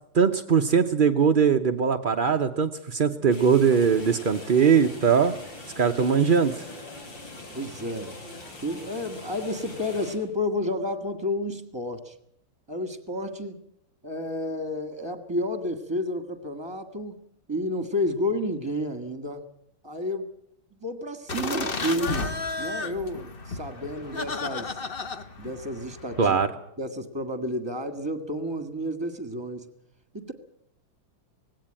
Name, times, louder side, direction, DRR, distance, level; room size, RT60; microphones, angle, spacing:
voice 1, 0.1-5.3 5.8-6.6 26.2-26.5, right 6 dB, 55° right, 5 dB, 0.5 m, -21 dB
sound 1, 3.3-10.2, left 2 dB, 70° left, 4.7 m, -42 dB
voice 2, 7.5-8.1 8.6-12.1 12.7-13.6 14.0-17.1 17.5-19.5 19.8-20.3 20.8-22.3 22.6-24.8 25.4-26.4 26.8-29.7 30.1-30.3, left 1 dB, 15° right, 10 dB, 1.6 m, -31 dB
sound 2, 21.3-26.5, left 3 dB, 35° left, 1.2 m, -33 dB
19.0 x 16.5 x 8.9 m, 0.73 s
omnidirectional pair, 2.2 m